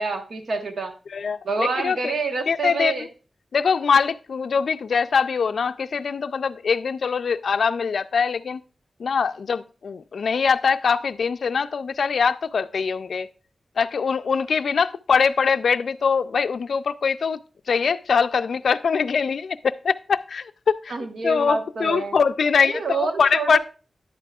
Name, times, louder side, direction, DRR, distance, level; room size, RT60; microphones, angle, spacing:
voice 1, 0.0-0.9 1.4-3.1 20.9-22.2 22.6-23.6, right 4 dB, 80° right, 1.2 m, -27 dB
voice 2, 1.1-2.1 2.5-3.1 3.5-8.6 9.0-13.3 13.8-17.4 17.7-20.9 21.2-23.6, left 5 dB, 85° left, 0.3 m, -23 dB
10.5 x 8.2 x 2.3 m
wide cardioid pair, 70°, 0 cm